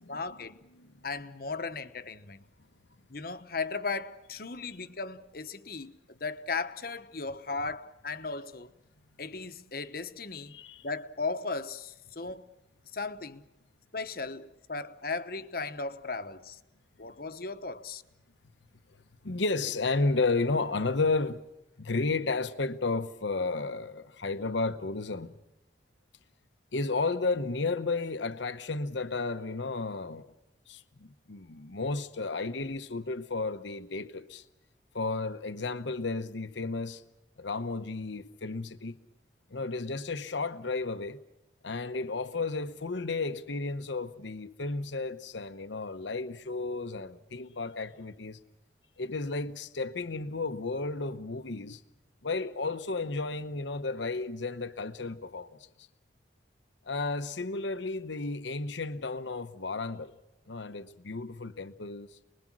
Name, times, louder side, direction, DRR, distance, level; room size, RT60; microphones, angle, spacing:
voice 1, 0.1-0.5 1.0-2.4 3.1-8.7 9.2-10.5 10.8-12.4 12.9-13.4 13.9-16.6 17.0-18.0, left 4 dB, 50° left, 1.1 m, -36 dB
voice 2, 10.5-10.9 19.2-21.4 21.8-25.3 26.7-30.3 30.7-34.4 34.9-37.0 37.4-39.0 39.5-41.2 41.6-48.4 49.0-51.8 52.2-55.9 56.8-60.1 60.5-62.1, left 3 dB, 75° left, 1.0 m, -33 dB
28.5 x 21.5 x 6.2 m
head